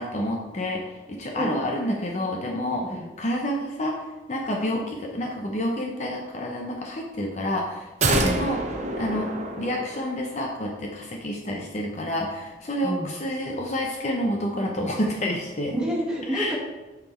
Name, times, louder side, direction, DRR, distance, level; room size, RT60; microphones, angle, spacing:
voice 1, 0.0-8.6 8.9-9.3 9.6-15.7 16.3-16.5, left 1 dB, 40° left, 1 dB, 0.7 m, -29 dB
sound 1, 8.0-10.4 10.7-10.8, right 2 dB, 40° right, 0.8 m, -27 dB
voice 2, 12.8-13.1 15.7-16.6, right 1 dB, 5° right, -5 dB, 1.8 m, -28 dB
8.4 x 4.7 x 4.3 m, 1.2 s
head